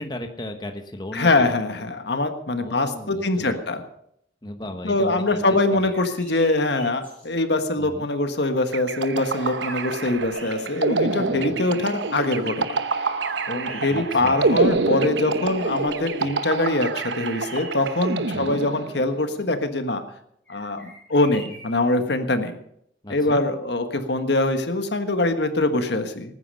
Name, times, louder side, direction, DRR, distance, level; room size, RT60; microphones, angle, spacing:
voice 1, 0.0-1.6 2.6-3.6 4.4-5.9 7.8-8.1 11.3-11.6 13.9-14.5 18.3-18.6 23.0-23.4, left 1 dB, 25° left, 5 dB, 1.1 m, -36 dB
voice 2, 1.1-3.8 4.8-12.8 13.5-20.0 20.5-22.6 23.1-26.4, left 2 dB, 70° left, 8 dB, 1.5 m, -23 dB
sound 1, 5.7-7.3 8.7-8.8 9.1-11.1 11.6-11.7 12.9-14.9 15.3-16.2 16.9-18.1 20.4-21.9, equal, 5° left, 6.6 m, -46 dB
sound 2, 8.7-19.2, right 3 dB, 75° right, 0.9 m, -27 dB
19.5 x 9.7 x 5.6 m, 0.72 s
head